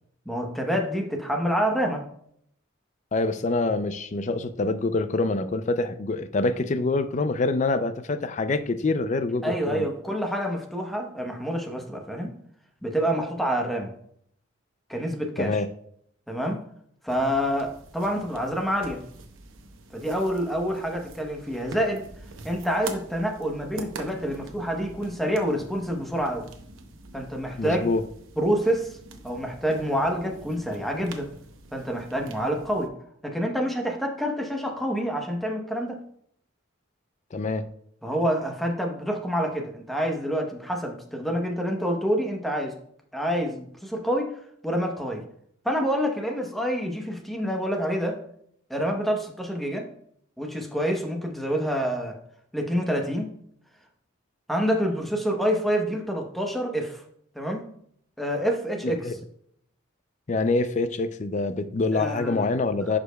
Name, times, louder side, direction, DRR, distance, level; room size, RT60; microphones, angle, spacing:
voice 1, 0.3-2.1 9.4-12.3 12.8-13.9 14.9-15.6 16.3-16.6 17.0-19.0 19.9-22.0 22.4-26.5 27.1-27.9 28.4-29.0 29.2-31.3 31.7-32.9 33.2-36.0 38.0-42.7 43.1-45.3 45.6-48.2 48.7-49.9 50.4-52.2 52.5-53.3 54.5-57.0 57.3-57.7 58.2-59.1 61.9-62.4, equal, ahead, 2 dB, 0.9 m, -27 dB
voice 2, 3.1-9.8 15.4-15.7 27.6-28.0 37.3-37.7 58.8-59.2 60.3-63.0, left 3 dB, 35° left, 11 dB, 0.4 m, -25 dB
sound 1, 17.1-32.9, right 3 dB, 80° right, 0.9 m, -45 dB
11.0 x 5.0 x 2.2 m, 0.68 s
head